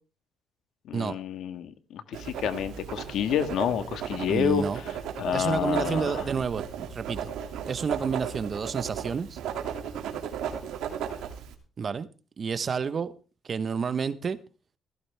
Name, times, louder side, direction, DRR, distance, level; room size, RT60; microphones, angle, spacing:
voice 1, 0.8-4.6 5.2-6.2, left 9 dB, 75° left, 1.6 m, -29 dB
Writing, 2.1-11.5, right 8 dB, 85° right, 2.6 m, -35 dB
voice 2, 4.3-4.8 5.3-7.3 7.7-9.4 11.8-12.1 12.4-13.1 13.4-14.4, right 6 dB, 45° right, 1.1 m, -30 dB
16.0 x 15.0 x 3.5 m
cardioid pair, 90°, 0 cm